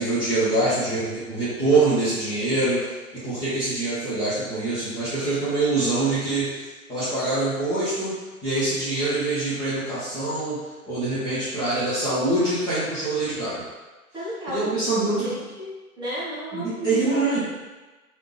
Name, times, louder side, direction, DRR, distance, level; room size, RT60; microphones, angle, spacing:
voice 1, 0.0-2.8 3.2-6.6 6.9-8.1 8.4-10.6 10.9-13.6 14.5-15.3 16.5-17.4, right 2 dB, 10° left, -13 dB, 0.8 m, -24 dB
voice 2, 14.1-14.7 15.2-17.4, equal, 10° right, -11 dB, 1.1 m, -33 dB
3.3 x 2.8 x 3.2 m, 1.2 s
figure-of-eight pair, 120°, 45 cm